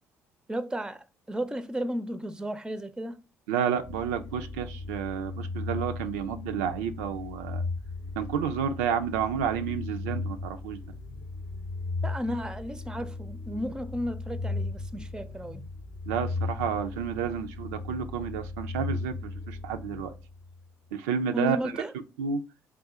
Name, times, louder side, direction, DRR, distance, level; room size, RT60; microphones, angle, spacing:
voice 1, 0.5-3.2 12.0-15.6 21.3-21.9, equal, 10° right, 0.5 m, -33 dB
voice 2, 3.5-7.6 8.2-10.8 16.1-20.1 20.9-21.8 22.2-22.4, right 7 dB, 75° right, 0.3 m, -30 dB
sound 1, 3.8-20.7, left 3 dB, 55° left, 0.6 m, -36 dB
3.6 x 2.1 x 4.1 m
hypercardioid pair, 50°, 8 cm